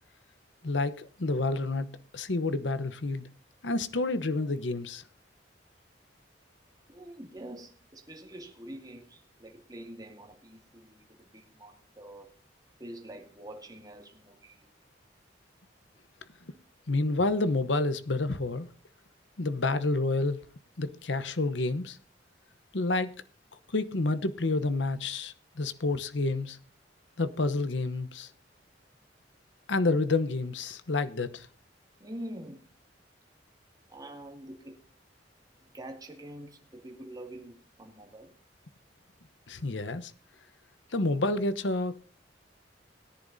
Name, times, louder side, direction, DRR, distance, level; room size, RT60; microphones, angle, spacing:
voice 1, 0.6-1.9 2.1-3.2 3.6-5.0 16.9-18.7 19.4-20.4 20.8-22.0 22.7-23.1 23.7-26.6 27.2-28.3 29.7-31.5 39.5-40.1 40.9-42.0, left 2 dB, 80° left, 1.0 m, -29 dB
voice 2, 6.9-12.3 12.8-14.7 32.0-32.7 33.9-34.8 35.6-38.3, right 1 dB, 20° right, 2.3 m, -45 dB
21.0 x 10.5 x 2.7 m
head